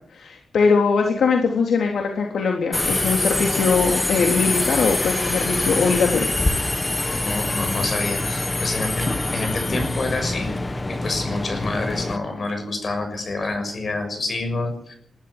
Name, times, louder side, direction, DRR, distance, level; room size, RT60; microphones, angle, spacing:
voice 1, 0.1-6.3, left 5 dB, 90° left, 0 dB, 3.7 m, -21 dB
Subway metro underground, 2.7-12.2, left 2 dB, 15° left, 1.2 m, -24 dB
voice 2, 7.2-10.5 10.9-14.9, left 3 dB, 40° left, 5 dB, 6.6 m, -28 dB
21.5 x 12.5 x 9.9 m, 0.64 s
wide cardioid pair, 170°, 0 cm